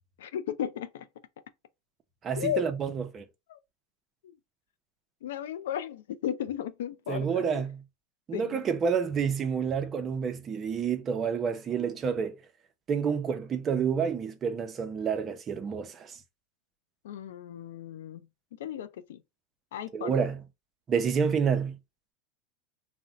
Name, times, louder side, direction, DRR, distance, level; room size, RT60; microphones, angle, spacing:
voice 1, 0.2-1.1 2.4-2.7 3.5-3.6 4.2-4.3 5.2-7.6 8.3-8.6 17.0-18.3 18.6-19.2 19.7-20.2, left 10 dB, 85° left, 0.4 m, -35 dB
voice 2, 2.2-3.3 7.1-7.8 8.3-12.4 12.9-16.2 19.9-20.4 20.9-21.8, right 6 dB, 30° right, 0.5 m, -29 dB
2.5 x 2.1 x 3.7 m
supercardioid pair, 115°, 0 cm